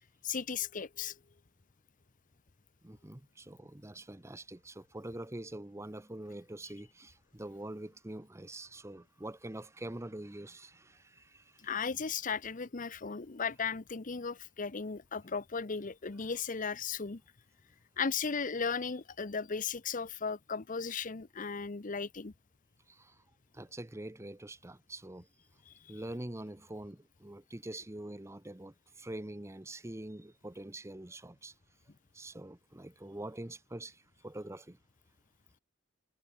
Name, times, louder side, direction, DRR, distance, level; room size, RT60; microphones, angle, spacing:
voice 1, 0.2-1.2 11.6-17.2 18.0-22.3 25.7-25.9, left 5 dB, 40° left, 0.8 m, -36 dB
voice 2, 2.8-11.7 22.9-23.2 23.5-25.3 25.9-31.5 32.1-34.8, right 1 dB, 15° right, 0.8 m, -45 dB
head